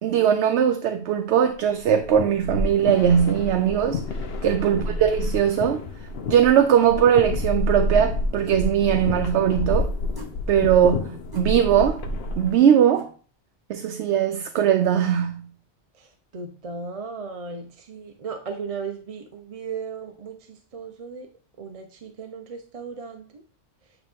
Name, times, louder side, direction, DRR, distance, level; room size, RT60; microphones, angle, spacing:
voice 1, 0.0-4.0 4.4-5.8 6.3-9.9 10.5-11.0 11.4-12.0 12.4-13.1 13.7-15.5, right 9 dB, 80° right, 0.9 m, -20 dB
sound 1, 1.8-12.6, left 2 dB, 65° left, 0.9 m, -29 dB
voice 2, 4.7-5.2 10.8-11.2 15.9-21.3 21.6-23.4, right 4 dB, 40° right, 0.6 m, -36 dB
sound 2, 10.2-10.4 11.3-11.5 12.9-13.1 14.5-14.7, equal, 20° right, 1.5 m, -41 dB
9.0 x 3.0 x 3.5 m
omnidirectional pair, 1.1 m